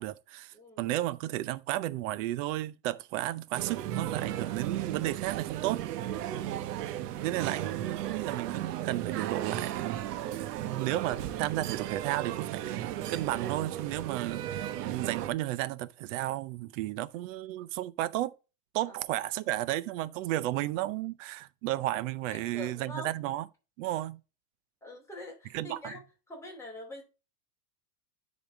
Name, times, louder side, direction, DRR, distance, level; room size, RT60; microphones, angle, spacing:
voice 1, 0.0-5.8 7.2-18.3 18.7-23.4 23.8-24.2 25.5-25.9, right 15 dB, 55° right, 0.7 m, -33 dB
voice 2, 0.5-0.9 6.2-6.6 18.9-19.0 22.3-23.1 24.8-26.0 26.3-27.0, left 1 dB, 5° left, 2.9 m, -45 dB
sound 1, 3.5-15.3, right 12 dB, 85° right, 1.0 m, -35 dB
10.5 x 4.2 x 3.7 m
supercardioid pair, 165°, 46 cm